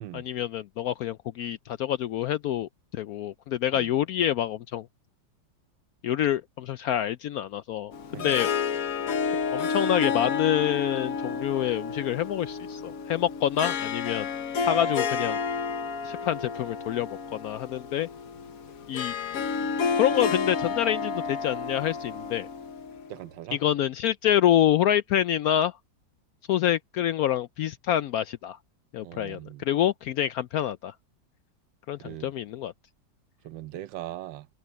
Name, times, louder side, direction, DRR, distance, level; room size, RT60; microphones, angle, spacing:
voice 1, 0.1-4.9 6.0-8.5 9.5-14.3 14.6-15.4 16.0-18.1 18.9-19.1 20.0-22.5 23.5-25.8 26.5-28.6 28.9-30.9 31.9-32.7, left 11 dB, 70° left, 0.8 m, -27 dB
Harp, 7.9-23.2, left 5 dB, 55° left, 1.3 m, -30 dB
voice 2, 23.1-23.6 29.0-29.6 32.0-32.3 33.4-34.5, right 13 dB, 85° right, 1.4 m, -40 dB
omnidirectional pair, 2.0 m